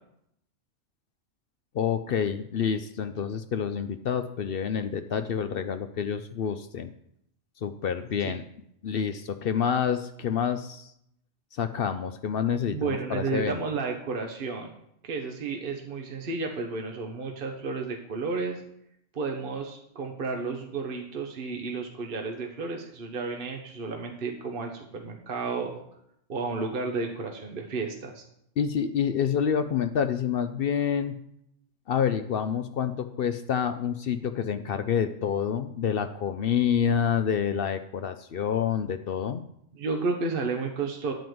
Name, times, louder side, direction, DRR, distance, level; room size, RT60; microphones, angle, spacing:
voice 1, 1.7-6.9 7.6-8.4 8.8-10.9 11.5-13.6 28.6-31.2 31.9-39.4, left 7 dB, 60° left, 9 dB, 0.7 m, -28 dB
voice 2, 12.7-14.7 15.0-18.6 19.1-25.8 26.3-28.2 39.7-41.1, right 4 dB, 50° right, 3 dB, 1.2 m, -32 dB
10.5 x 5.0 x 7.8 m, 0.75 s
omnidirectional pair, 1.3 m